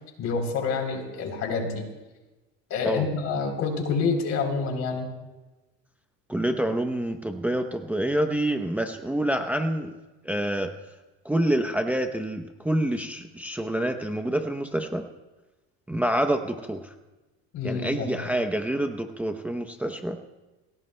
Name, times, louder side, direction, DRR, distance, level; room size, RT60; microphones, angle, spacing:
voice 1, 0.2-1.8 2.7-5.1 17.5-18.3, left 4 dB, 55° left, 3 dB, 3.5 m, -28 dB
voice 2, 6.3-9.9 10.2-10.7 11.2-15.1 15.9-16.8 17.6-20.2, right 1 dB, 5° right, 5 dB, 0.7 m, -27 dB
25.5 x 16.5 x 2.2 m, 1.1 s
cardioid pair, 125°, 32 cm